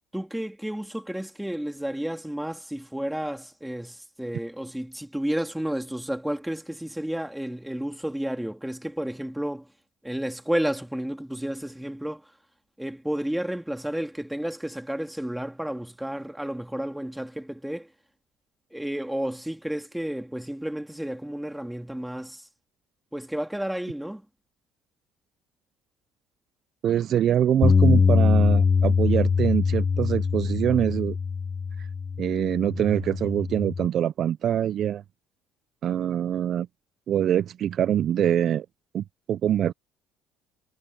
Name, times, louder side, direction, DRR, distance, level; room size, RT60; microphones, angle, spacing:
voice 1, 0.1-9.7 10.0-12.3 12.8-17.9 18.7-22.5 23.1-24.2, right 1 dB, 5° right, 2.6 m, -31 dB
voice 2, 26.8-31.2 31.8-31.9 32.2-35.0 35.8-36.7 37.1-38.7 38.9-39.7, right 10 dB, 50° right, 0.4 m, -24 dB
Bass guitar, 27.6-33.9, left 5 dB, 30° left, 0.4 m, -23 dB
cardioid pair, 120°, 0 cm